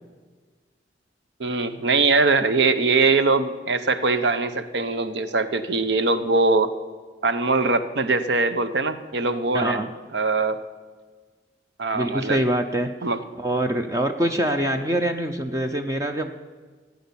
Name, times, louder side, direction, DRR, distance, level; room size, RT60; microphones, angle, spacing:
voice 1, 1.4-6.7 7.2-9.8 10.1-10.6 11.8-12.4 13.0-13.2, right 3 dB, 65° right, 11 dB, 0.8 m, -22 dB
voice 2, 9.5-9.9 11.9-12.9 13.4-16.4, right 1 dB, 20° right, 5 dB, 0.6 m, -24 dB
16.0 x 9.4 x 7.0 m, 1.4 s
head